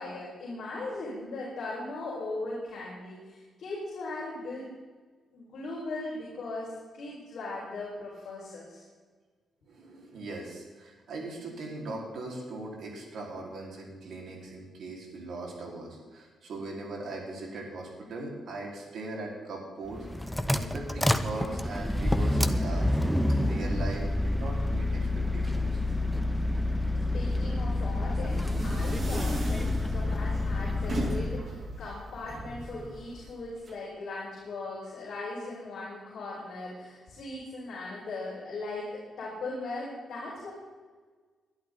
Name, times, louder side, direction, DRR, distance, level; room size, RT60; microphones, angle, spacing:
voice 1, 0.0-4.7 5.3-8.8 27.1-40.5, left 2 dB, 55° left, -6 dB, 5.2 m, -38 dB
voice 2, 9.7-22.9 23.4-25.8, right 2 dB, 65° right, -2 dB, 4.5 m, -40 dB
sound 1, 19.9-31.4, left 1 dB, ahead, 0.7 m, -28 dB
sound 2, 27.9-33.7, right 1 dB, 35° right, 2.2 m, -37 dB
22.0 x 12.0 x 4.0 m, 1.4 s
wide cardioid pair, 160°, 0 cm